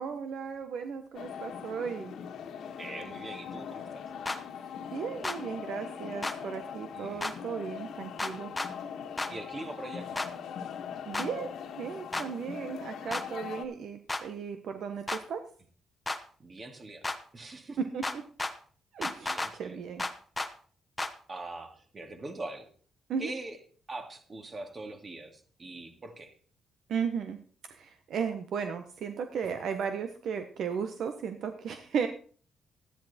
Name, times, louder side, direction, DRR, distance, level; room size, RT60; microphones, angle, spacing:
voice 1, 0.0-2.1 4.9-8.5 11.1-15.5 17.8-18.2 18.9-20.0 23.1-23.3 26.9-27.4 27.7-32.1, right 6 dB, 70° right, 8 dB, 1.1 m, -35 dB
sound 1, 1.1-13.6, left 7 dB, 70° left, 1.5 m, -41 dB
voice 2, 2.8-4.0 6.9-7.2 9.3-10.2 16.4-17.0 17.3-17.8 19.2-19.8 21.3-22.7 23.2-23.6 23.9-25.3 25.6-26.3, right 2 dB, 35° right, 6 dB, 2.4 m, -42 dB
sound 2, 4.3-4.4 5.2-5.4 6.2-6.4 7.2-7.3 8.2-8.7 9.2-9.3 10.2-10.3 11.1-11.3 12.1-12.3 13.1-13.3 14.1-14.2 15.1-15.2 16.1-16.2 17.0-17.2 18.0-18.5 19.0-19.5 20.0-20.5 21.0-21.1, left 2 dB, 15° left, 1.1 m, -32 dB
13.0 x 10.5 x 4.3 m, 0.43 s
cardioid pair, 90°, 0 cm